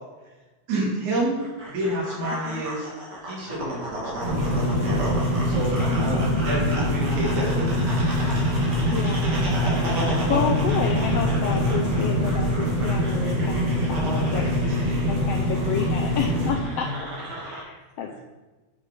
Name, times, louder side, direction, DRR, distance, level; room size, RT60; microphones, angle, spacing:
voice 1, 0.7-1.4 1.7-2.9 3.2-7.8 14.3-15.0 16.8-16.9, right 1 dB, 75° right, -3 dB, 3.8 m, -30 dB
sound 1, 1.4-17.6, right 1 dB, 35° right, 2.8 m, -34 dB
sound 2, 4.2-16.5, equal, 60° right, 3.5 m, -24 dB
voice 2, 5.9-6.6 8.9-9.6 9.9-14.5 14.8-16.9 17.4-18.2, left 7 dB, 80° left, 3 dB, 1.4 m, -30 dB
9.8 x 6.6 x 5.0 m, 1.2 s
omnidirectional pair, 3.4 m